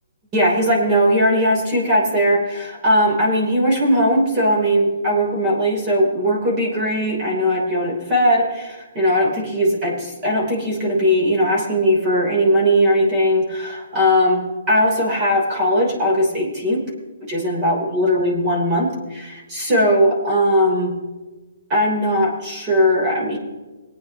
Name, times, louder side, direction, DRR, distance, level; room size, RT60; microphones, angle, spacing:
voice 1, 0.3-16.8 17.2-20.9 21.7-23.4, equal, 25° right, -2 dB, 3.2 m, -19 dB
25.0 x 9.3 x 2.9 m, 1.2 s
hypercardioid pair, 150°, 0 cm